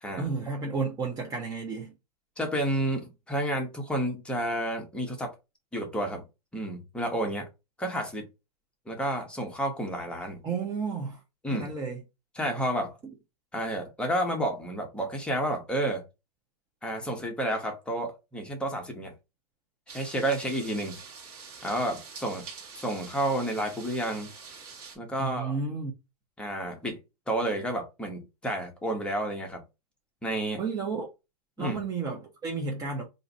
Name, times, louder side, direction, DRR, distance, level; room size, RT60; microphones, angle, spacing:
voice 1, 0.2-1.9 10.4-11.2 11.5-12.0 25.2-25.9 30.6-31.1 31.6-33.0, right 4 dB, 20° right, 0.6 m, -32 dB
voice 2, 2.4-5.3 5.7-6.2 6.5-7.5 7.8-8.3 8.9-10.4 11.4-11.7 12.3-13.0 13.5-16.0 16.8-19.1 19.9-21.0 21.6-22.4 22.7-24.3 25.0-25.5 26.4-27.0 27.3-29.6 30.2-30.6 31.6-31.8, right 1 dB, 5° left, 0.9 m, -30 dB
sound 1, 19.9-25.0, right 5 dB, 40° right, 1.4 m, -46 dB
2.6 x 2.5 x 4.0 m
hypercardioid pair, 125°, 20 cm